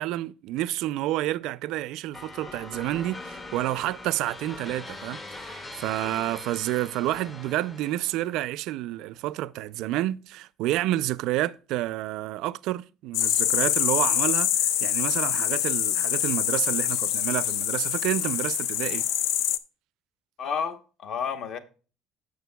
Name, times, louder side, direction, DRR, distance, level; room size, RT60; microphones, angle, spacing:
voice 1, 0.0-19.0, right 15 dB, 60° right, 0.4 m, -29 dB
sound 1, 2.1-8.4, left 2 dB, 15° left, 0.6 m, -42 dB
sound 2, 13.1-19.6, left 11 dB, 70° left, 0.5 m, -25 dB
voice 2, 20.4-21.6, left 7 dB, 45° left, 1.0 m, -31 dB
16.0 x 6.4 x 2.2 m
cardioid pair, 175°, 0 cm